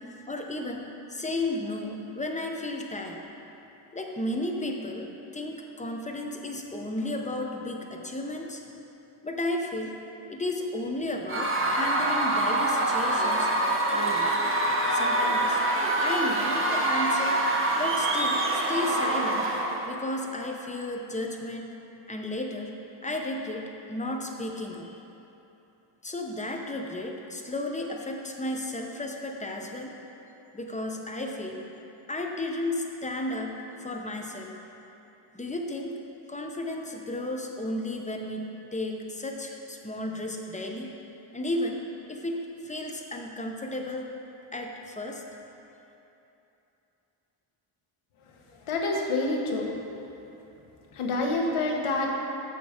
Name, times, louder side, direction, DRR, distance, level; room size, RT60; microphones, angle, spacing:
voice 1, 0.3-3.2 3.9-5.1 5.3-8.6 9.2-9.9 10.3-13.5 13.9-14.3 14.9-15.6 16.0-17.4 17.8-19.5 19.9-21.7 22.1-22.7 23.0-25.0 26.0-29.9 30.5-31.6 32.1-34.5 35.3-36.0 36.3-38.5 38.7-40.9 41.3-44.1 44.5-45.2, left 1 dB, 15° left, 2 dB, 0.8 m, -33 dB
Screaming / Cheering / Crowd, 11.3-19.9, right 1 dB, 25° right, 0.9 m, -25 dB
voice 2, 48.7-49.7 50.9-52.1, left 2 dB, 75° left, 0 dB, 1.2 m, -27 dB
6.7 x 6.2 x 5.0 m, 3.0 s
cardioid pair, 85°, 50 cm